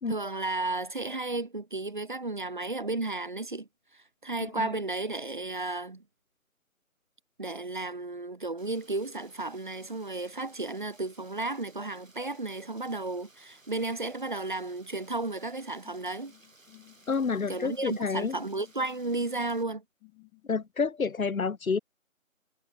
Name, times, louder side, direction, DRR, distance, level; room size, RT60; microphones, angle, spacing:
voice 1, 0.1-3.7 3.9-6.0 7.4-16.3 17.5-19.8, right 2 dB, 35° right, 0.9 m, -33 dB
Rain, 8.6-19.6, right 2 dB, 70° right, 6.9 m, -59 dB
sound 1, 15.8-20.6, left 40 dB or more, 10° left, 3.8 m, -57 dB
voice 2, 17.1-18.3 20.5-21.8, left 5 dB, 80° left, 0.9 m, -29 dB
figure-of-eight pair, 160°, 41 cm